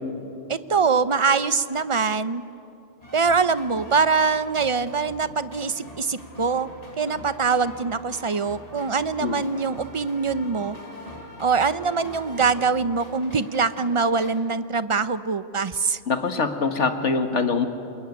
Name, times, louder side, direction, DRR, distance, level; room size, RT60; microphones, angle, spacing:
voice 1, 0.5-2.4 3.1-6.7 7.0-10.8 11.4-16.0, right 5 dB, 35° right, 13 dB, 0.6 m, -23 dB
sound 1, 3.0-14.4, left 1 dB, 35° left, 3.8 m, -43 dB
voice 2, 16.1-17.7, left 4 dB, 85° left, 7 dB, 1.9 m, -23 dB
27.0 x 21.5 x 9.5 m, 2.7 s
omnidirectional pair, 1.2 m